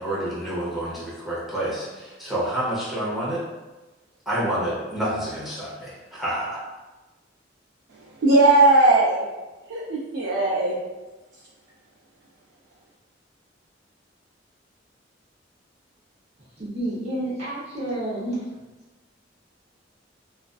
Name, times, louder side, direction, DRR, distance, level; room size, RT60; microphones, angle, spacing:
voice 1, 0.0-3.4 4.3-6.6, right 1 dB, ahead, -9 dB, 0.8 m, -28 dB
voice 2, 8.2-9.2 9.7-10.7, right 2 dB, 85° right, -4 dB, 0.4 m, -18 dB
voice 3, 16.6-18.5, right 1 dB, 35° right, -9 dB, 0.8 m, -30 dB
2.4 x 2.4 x 2.3 m, 1.1 s
head